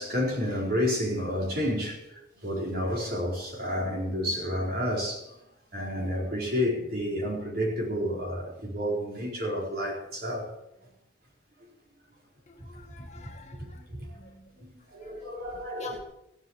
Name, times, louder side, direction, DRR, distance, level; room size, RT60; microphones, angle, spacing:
voice 1, 0.0-5.4 5.7-10.5 11.6-11.7 12.6-12.7 13.6-14.2 14.6-16.0, equal, 50° right, 4.5 m, -30 dB
voice 2, 12.5-14.5 15.0-15.3 15.8-16.0, left 3 dB, 35° left, 1.9 m, -47 dB
15.5 x 8.0 x 7.3 m
head